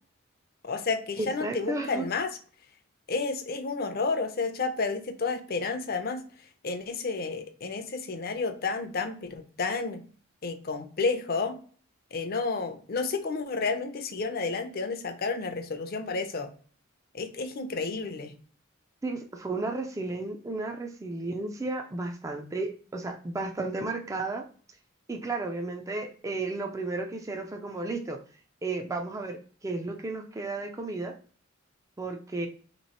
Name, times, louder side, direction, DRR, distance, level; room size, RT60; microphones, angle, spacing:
voice 1, 0.6-2.3 3.1-6.2 6.6-10.0 10.4-11.5 12.1-16.5 17.1-18.3, left 4 dB, 45° left, 8 dB, 0.6 m, -31 dB
voice 2, 1.2-2.1 19.0-24.5 25.1-28.2 28.6-31.1 32.0-32.5, right 3 dB, 15° right, 3 dB, 0.3 m, -33 dB
3.0 x 2.9 x 4.1 m, 0.42 s
head